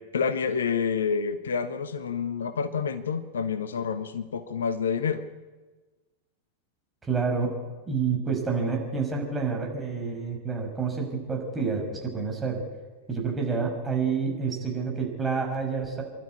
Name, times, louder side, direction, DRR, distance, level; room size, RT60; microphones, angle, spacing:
voice 1, 0.1-5.2, left 6 dB, 65° left, 12 dB, 1.1 m, -28 dB
voice 2, 7.1-7.5 7.9-12.6 13.1-16.0, right 5 dB, 15° right, 0 dB, 6.0 m, -28 dB
25.5 x 12.0 x 9.7 m, 1.3 s
figure-of-eight pair, 90°, 0 cm